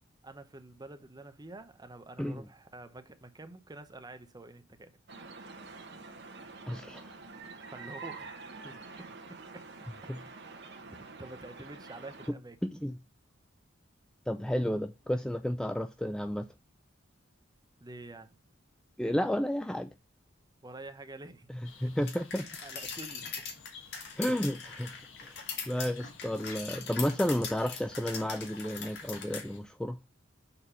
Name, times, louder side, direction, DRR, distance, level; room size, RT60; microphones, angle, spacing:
voice 1, 0.2-4.9 7.7-8.3 8.6-8.8 9.3-9.6 11.2-12.6 17.8-18.4 20.6-21.5 21.8-21.9 22.4-23.2, right 2 dB, 20° right, 0.9 m, -47 dB
sound 1, 5.1-12.3, right 4 dB, 60° right, 1.3 m, -47 dB
voice 2, 6.7-7.1 10.1-10.2 12.6-12.9 14.3-16.5 19.0-19.9 21.8-22.4 24.2-24.9 25.2-25.3 25.7-30.0, equal, 5° left, 0.3 m, -32 dB
sound 2, 21.6-29.6, left 5 dB, 85° left, 1.3 m, -54 dB
sound 3, 22.1-29.4, left 6 dB, 60° left, 1.9 m, -41 dB
6.9 x 4.3 x 5.5 m
head